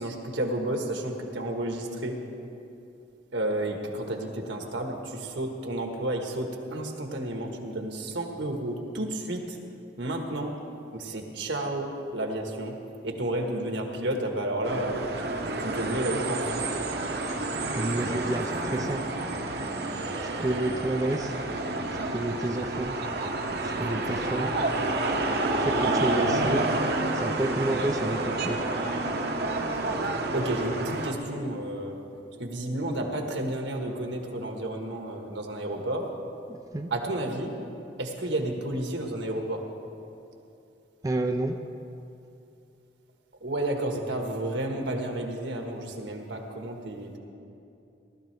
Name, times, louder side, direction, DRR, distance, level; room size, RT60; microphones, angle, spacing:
voice 1, 0.0-2.2 3.3-9.6 10.0-10.6 10.9-12.7 13.0-15.0 15.4-16.5 30.3-32.0 32.4-36.1 36.9-37.5 38.0-39.7 43.4-47.2, right 1 dB, 75° right, 2 dB, 1.5 m, -31 dB
sound 1, 14.6-31.1, right 2 dB, 55° right, 0.9 m, -29 dB
voice 2, 17.8-19.0 20.2-21.3 22.1-22.9 23.6-24.5 25.6-26.7 27.2-28.6 36.7-36.9 41.0-41.6, right 1 dB, 20° right, 3 dB, 0.4 m, -29 dB
18.5 x 13.0 x 3.4 m, 2.7 s
head